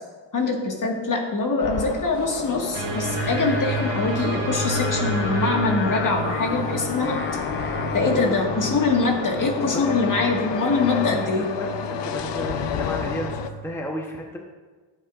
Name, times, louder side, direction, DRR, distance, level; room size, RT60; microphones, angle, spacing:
voice 1, 0.3-7.2 7.9-11.6, left 3 dB, 45° left, 1 dB, 1.7 m, -24 dB
sound 1, 1.6-13.5, left 8 dB, 70° left, 0.7 m, -31 dB
sound 2, 2.7-13.8, right 3 dB, 85° right, 1.5 m, -31 dB
Singing, 3.2-8.3, left 5 dB, 25° left, 0.5 m, -33 dB
voice 2, 11.6-14.4, equal, 5° left, 0 dB, 0.9 m, -32 dB
14.5 x 8.2 x 2.5 m, 1.3 s
cardioid pair, 125°, 44 cm